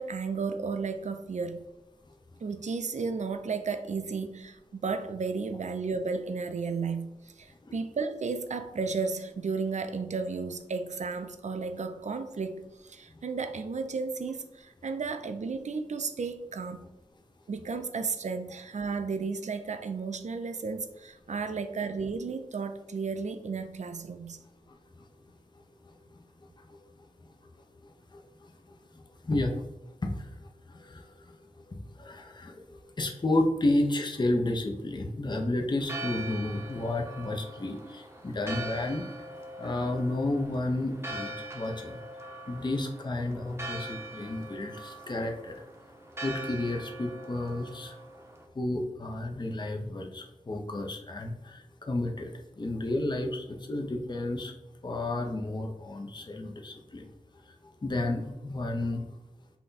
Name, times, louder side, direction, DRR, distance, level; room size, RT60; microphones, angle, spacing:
voice 1, 0.0-1.6 2.4-16.9 17.5-24.4, right 4 dB, 65° right, 0.4 m, -33 dB
voice 2, 24.7-25.0 25.8-26.0 26.4-27.0 27.8-39.1 39.6-42.0 42.5-45.6 46.2-48.0 48.5-54.5 54.8-57.1 57.4-59.1, left 2 dB, 35° left, 0.6 m, -32 dB
Church bell, 35.8-48.5, right 1 dB, 20° right, 0.7 m, -42 dB
5.7 x 2.2 x 3.9 m
wide cardioid pair, 65°, 13 cm